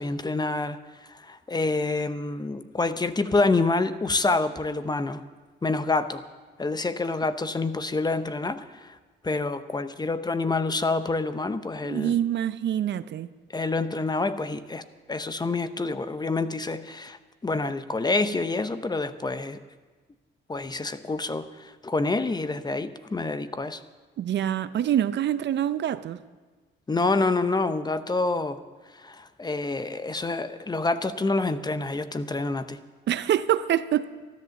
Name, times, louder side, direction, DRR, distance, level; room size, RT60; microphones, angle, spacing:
voice 1, 0.0-5.2 5.6-6.2 6.6-9.0 9.2-12.2 13.5-14.8 15.1-17.2 17.4-19.6 20.5-23.8 26.9-28.6 29.0-32.8, left 3 dB, 20° left, 0.7 m, -27 dB
voice 2, 11.8-13.3 24.2-26.2 33.1-34.1, right 10 dB, 65° right, 0.6 m, -25 dB
14.0 x 10.5 x 7.1 m
cardioid pair, 90°, 20 cm